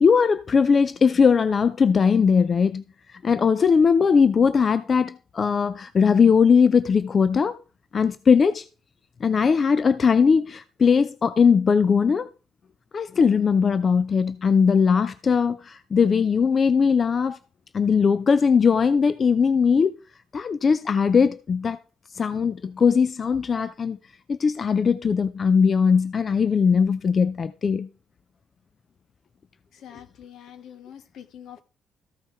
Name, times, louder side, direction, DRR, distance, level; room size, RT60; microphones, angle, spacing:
voice 1, 0.0-7.6 7.9-8.7 9.2-12.3 12.9-17.4 17.7-19.9 20.3-21.8 22.1-24.0 24.3-27.9, left 6 dB, 45° left, 0.4 m, -20 dB
voice 2, 29.7-31.6, left 9 dB, 75° left, 1.1 m, -44 dB
14.0 x 5.4 x 4.3 m
cardioid pair, 90°, 0 cm